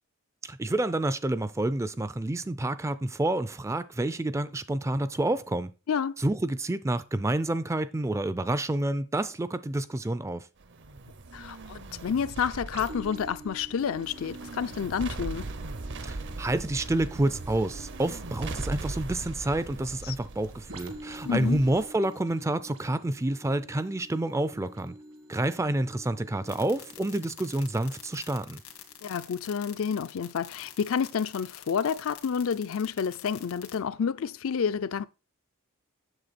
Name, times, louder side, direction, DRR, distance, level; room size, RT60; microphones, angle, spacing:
voice 1, 0.4-5.7 6.2-10.5 16.0-25.0 25.3-28.6, right 1 dB, 15° right, 0.4 m, -29 dB
sound 1, 10.6-21.9, right 2 dB, 55° right, 0.7 m, -40 dB
voice 2, 11.3-15.5 20.0-20.2 21.2-21.6 29.0-35.1, left 7 dB, 65° left, 0.4 m, -29 dB
sound 2, 12.7-30.2 30.8-30.9, right 1 dB, 75° right, 1.9 m, -49 dB
sound 3, 26.4-33.8, left 11 dB, 90° left, 1.8 m, -46 dB
7.9 x 7.0 x 4.1 m
head